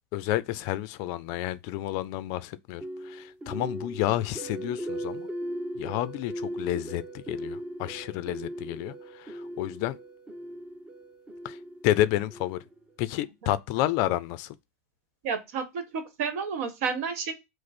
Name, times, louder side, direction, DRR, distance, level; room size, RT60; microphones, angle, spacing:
voice 1, 0.1-5.3 5.8-10.0 11.4-11.6 11.8-12.6 13.0-14.6, left 14 dB, 50° left, 0.4 m, -30 dB
sound 1, 2.8-12.9, right 1 dB, 15° right, 0.6 m, -38 dB
voice 2, 15.2-17.3, right 6 dB, 75° right, 1.1 m, -31 dB
5.1 x 2.0 x 4.1 m
supercardioid pair, 145°, 8 cm